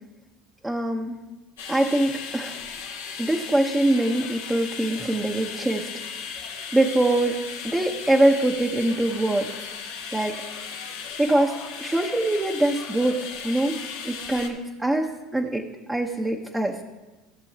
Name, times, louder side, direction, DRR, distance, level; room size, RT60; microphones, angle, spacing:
voice 1, 0.6-1.2 1.7-2.6 3.2-5.9 6.7-7.4 7.6-9.5 10.1-10.3 11.2-13.8 14.0-15.1 15.3-16.8, right 1 dB, 10° right, -1 dB, 1.0 m, -23 dB
sound 1, 1.6-14.5, left 6 dB, 85° left, 1.5 m, -36 dB
15.5 x 6.9 x 2.9 m, 1.1 s
hypercardioid pair, 75°, 0 cm